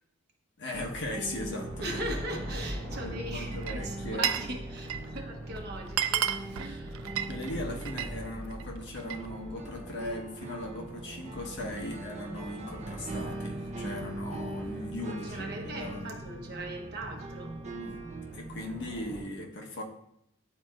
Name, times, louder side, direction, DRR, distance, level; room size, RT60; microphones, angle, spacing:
voice 1, 0.6-2.1 3.0-4.3 6.6-6.8 7.2-16.1 17.7-18.0 18.3-19.8, left 1 dB, 60° left, 0 dB, 1.1 m, -38 dB
sound 1, 0.7-19.2, equal, 10° left, 2.5 m, -43 dB
sound 2, 1.0-19.3, right 3 dB, 35° right, 0.5 m, -42 dB
voice 2, 1.8-6.3 6.6-7.2 15.0-17.5, right 1 dB, 50° right, 2 dB, 1.0 m, -39 dB
Glass, 3.5-4.5 4.8-5.2 5.6-5.7 5.9-8.1 8.5-9.3, right 10 dB, 85° right, 0.4 m, -32 dB
10.0 x 4.2 x 2.4 m, 0.77 s
head